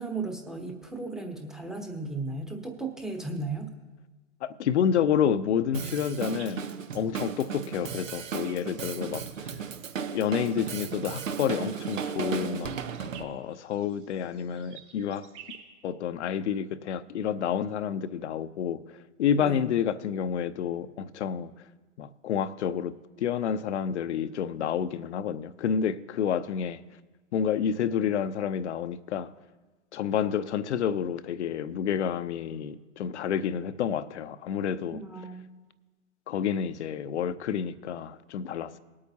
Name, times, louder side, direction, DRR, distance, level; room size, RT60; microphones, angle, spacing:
voice 1, 0.0-3.7 19.4-19.7 34.9-35.6, right 3 dB, ahead, 0.9 m, -35 dB
voice 2, 4.4-6.6 6.9-9.5 10.1-12.7 13.2-15.3 15.8-18.8 19.2-21.5 22.0-26.8 27.3-29.3 29.9-35.0 36.3-38.8, left 8 dB, 60° left, 0.7 m, -29 dB
Drum kit, 5.7-13.2, right 6 dB, 85° right, 0.9 m, -35 dB
sound 1, 6.4-15.6, right 8 dB, 60° right, 3.1 m, -54 dB
19.5 x 8.6 x 2.8 m
hypercardioid pair, 125°, 38 cm